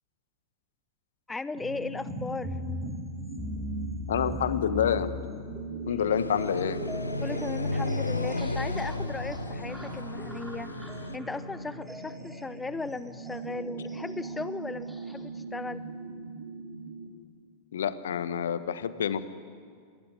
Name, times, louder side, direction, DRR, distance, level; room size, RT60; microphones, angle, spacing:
voice 1, 1.3-2.6 7.2-10.7 11.1-15.8, left 3 dB, 10° left, 15 dB, 0.7 m, -37 dB
sound 1, 1.5-17.1, right 3 dB, 55° right, 5.0 m, -41 dB
sound 2, 2.0-15.2, equal, 5° right, 4.0 m, -40 dB
voice 2, 4.1-5.1 5.9-6.8 17.7-19.3, left 8 dB, 65° left, 13 dB, 1.3 m, -28 dB
sound 3, 6.1-11.1, left 3 dB, 80° left, 0.8 m, -34 dB
28.5 x 21.5 x 9.7 m, 2.1 s
figure-of-eight pair, 90°, 0 cm